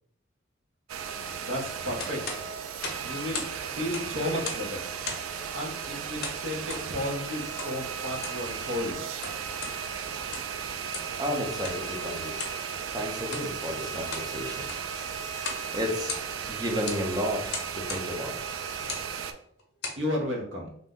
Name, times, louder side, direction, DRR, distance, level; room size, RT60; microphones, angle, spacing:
sound 1, 0.9-19.3, right 7 dB, 90° right, 0.3 m, -35 dB
voice 1, 1.4-2.4 3.0-3.5 3.7-4.8 5.5-9.1 20.0-20.7, left 1 dB, 65° right, 0 dB, 0.8 m, -33 dB
sound 2, 2.0-3.6 3.8-4.7 5.0-5.4 6.2-6.9 7.6-7.8 8.1-8.4 9.0-9.8 10.2-10.6 10.9-11.2 11.6-11.8 12.4-12.6 13.2-13.5 13.9-14.3 14.6-14.9 15.4-15.7 15.9-16.5 16.9-17.0 17.5-18.1 18.8-19.1 19.6-20.0, left 4 dB, 55° left, 0.6 m, -37 dB
voice 2, 11.2-12.3 12.9-14.7 15.7-16.1 16.5-17.4 17.7-18.3, equal, 20° right, 0 dB, 0.6 m, -32 dB
2.6 x 2.1 x 3.6 m, 0.68 s
head